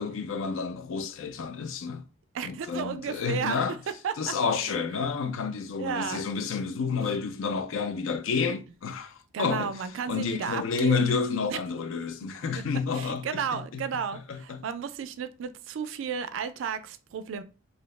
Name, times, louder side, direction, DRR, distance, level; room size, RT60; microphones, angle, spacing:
voice 1, 0.0-2.0 2.4-3.8 4.2-9.7 10.1-13.3 13.5-13.8 14.3-14.6, left 5 dB, 80° left, 0.4 m, -30 dB
voice 2, 2.3-3.8 4.0-4.3 4.7-4.8 5.8-6.3 9.3-11.1 11.5-11.6 12.5-12.6 12.9-17.4, right 6 dB, 70° right, 0.3 m, -33 dB
2.6 x 2.0 x 3.1 m
head